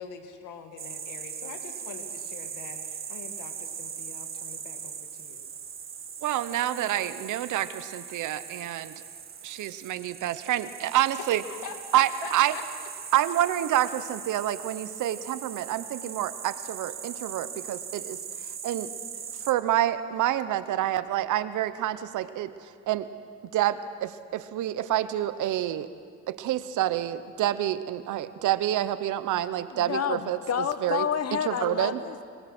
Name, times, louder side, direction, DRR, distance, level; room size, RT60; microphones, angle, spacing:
voice 1, 0.0-5.5 11.4-12.6, left 6 dB, 85° left, 5 dB, 2.0 m, -44 dB
sound 1, 0.8-19.5, right 7 dB, 45° right, 1.4 m, -40 dB
voice 2, 6.2-8.9 9.4-11.4 11.9-12.5 13.1-18.2 18.6-18.9 19.5-23.1 23.5-25.9 26.3-30.4 30.8-31.1 31.4-32.0, right 12 dB, 80° right, 13 dB, 1.0 m, -28 dB
voice 3, 29.7-32.3, left 8 dB, 55° left, 11 dB, 1.1 m, -29 dB
23.0 x 21.0 x 6.2 m, 2.2 s
cardioid pair, 90°, 30 cm